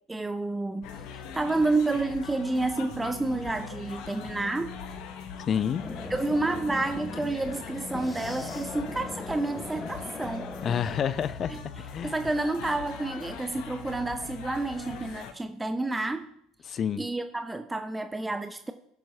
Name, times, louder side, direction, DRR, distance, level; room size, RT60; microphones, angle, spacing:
voice 1, 0.1-4.7 6.1-10.5 11.5-11.6 12.0-16.3 17.0-18.7, right 2 dB, 10° right, 0.7 m, -30 dB
sound 1, 0.8-15.3, left 7 dB, 60° left, 1.0 m, -41 dB
voice 2, 5.5-5.8 10.6-12.1 16.7-17.0, left 8 dB, 40° left, 0.5 m, -29 dB
sound 2, 5.8-11.0, left 2 dB, 15° left, 1.4 m, -40 dB
18.0 x 7.4 x 2.8 m
figure-of-eight pair, 70°, 0 cm